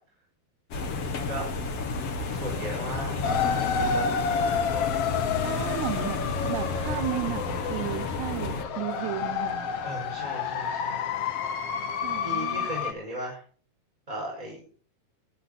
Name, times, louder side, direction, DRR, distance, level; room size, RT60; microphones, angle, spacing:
sound 1, 0.7-8.6, left 4 dB, 50° left, 2.1 m, -32 dB
voice 1, 2.3-5.0 9.8-11.0 12.2-13.4 14.1-14.6, right 1 dB, 10° right, -4 dB, 5.8 m, -37 dB
sound 2, 3.2-12.9, left 6 dB, 70° left, 1.4 m, -30 dB
voice 2, 5.4-9.7 12.0-12.7, right 16 dB, 90° right, 8 dB, 2.9 m, -34 dB
20.5 x 10.0 x 4.2 m, 0.43 s
omnidirectional pair, 4.5 m